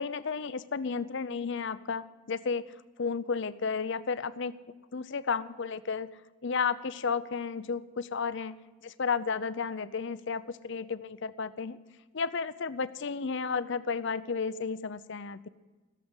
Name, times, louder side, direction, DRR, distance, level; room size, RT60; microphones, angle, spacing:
voice 1, 0.0-2.7 3.0-4.6 4.9-6.1 6.4-8.6 8.8-11.8 12.1-15.5, left 5 dB, 55° left, 15 dB, 0.6 m, -32 dB
16.0 x 7.4 x 8.2 m, 1.2 s
head